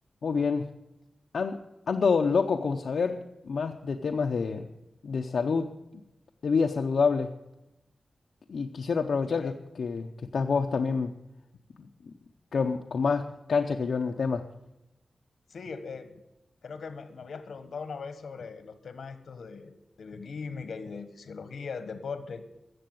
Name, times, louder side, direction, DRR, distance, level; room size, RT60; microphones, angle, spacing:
voice 1, 0.2-0.7 1.3-1.6 1.9-4.7 5.0-5.7 6.4-7.3 8.5-11.1 11.8-11.9 12.5-14.5, left 5 dB, 65° left, 4 dB, 0.6 m, -27 dB
voice 2, 15.5-16.2 16.6-22.4, left 5 dB, 80° left, 11 dB, 1.2 m, -40 dB
14.5 x 7.7 x 9.2 m, 0.92 s
wide cardioid pair, 180°, 0 cm